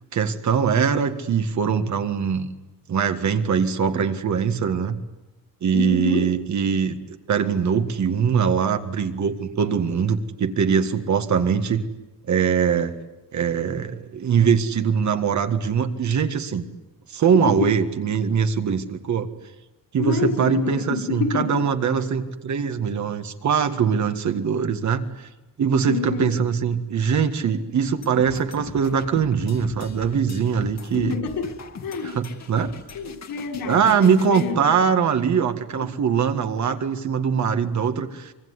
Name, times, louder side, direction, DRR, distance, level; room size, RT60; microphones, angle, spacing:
voice 1, 0.1-2.5 2.9-5.0 5.6-7.0 7.3-11.9 12.3-12.9 13.3-16.6 17.1-19.3 19.9-25.3 25.6-31.2 32.0-32.7 33.7-38.3, right 6 dB, 50° right, 8 dB, 1.9 m, -22 dB
voice 2, 5.7-6.3 17.3-17.7 20.0-22.1 25.9-26.4 31.0-31.5 31.8-32.2 32.9-34.8 35.8-35.9, left 5 dB, 70° left, 5 dB, 6.1 m, -28 dB
sound 1, 28.0-34.5, left 5 dB, 50° left, 2.2 m, -41 dB
25.0 x 23.5 x 9.7 m, 1.0 s
cardioid pair, 150°, 36 cm